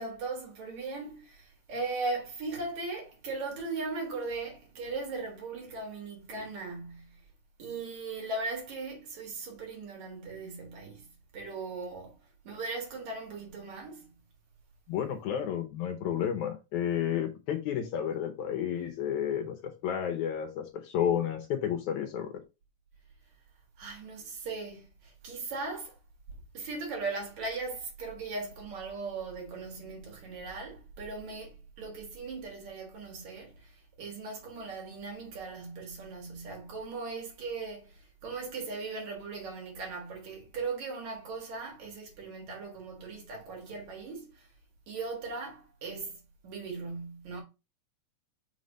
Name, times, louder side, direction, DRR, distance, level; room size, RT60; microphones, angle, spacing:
voice 1, 0.0-7.2 7.6-12.2 12.4-14.2 23.8-26.0 26.5-44.5 44.9-47.4, right 3 dB, 70° right, 3.0 m, -38 dB
voice 2, 14.9-22.3, left 9 dB, 75° left, 2.2 m, -31 dB
5.9 x 3.2 x 5.3 m
omnidirectional pair, 3.5 m